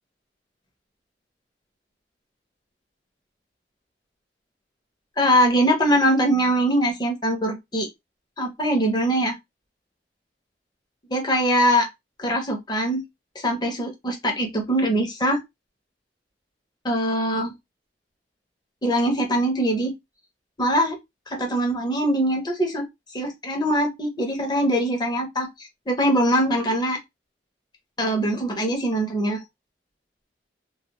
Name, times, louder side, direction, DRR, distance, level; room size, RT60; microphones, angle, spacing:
voice 1, 5.2-7.9 8.4-9.4 11.1-11.9 12.2-13.0 13.4-15.4 16.8-17.5 18.8-19.9 20.6-21.0 21.3-22.8 23.1-27.0 28.0-29.4, equal, 25° left, 0.8 m, -22 dB
2.3 x 2.2 x 2.9 m
head